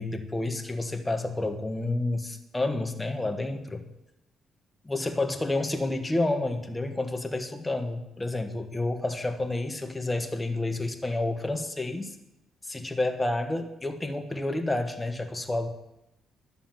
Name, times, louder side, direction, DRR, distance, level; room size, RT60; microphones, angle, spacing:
voice 1, 0.0-3.8 4.9-12.2 12.6-15.7, left 2 dB, 15° left, 6 dB, 1.4 m, -30 dB
11.0 x 7.0 x 7.5 m, 0.89 s
cardioid pair, 90°, 0 cm